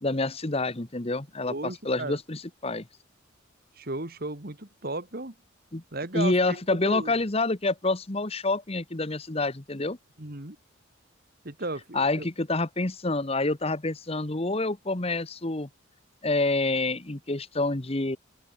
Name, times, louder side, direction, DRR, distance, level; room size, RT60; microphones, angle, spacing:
voice 1, 0.0-2.8 5.7-5.8 6.1-10.0 11.9-15.7 16.2-18.2, left 2 dB, 30° left, 1.2 m, -27 dB
voice 2, 1.4-2.2 3.8-5.3 5.9-7.1 10.2-10.6 11.4-12.3, right 2 dB, 45° right, 2.4 m, -35 dB
open air
head